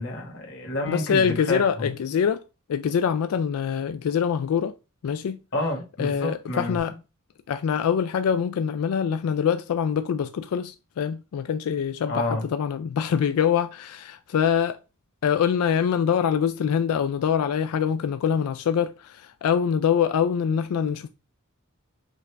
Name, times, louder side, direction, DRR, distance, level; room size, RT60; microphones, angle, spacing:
voice 1, 0.0-1.9 5.5-6.8 12.1-12.4, left 1 dB, 60° left, 1.6 m, -29 dB
voice 2, 0.9-2.4 2.7-4.7 5.0-5.4 6.0-6.9 7.5-14.8 15.2-21.1, left 7 dB, 80° left, 0.3 m, -24 dB
5.3 x 2.4 x 3.3 m
head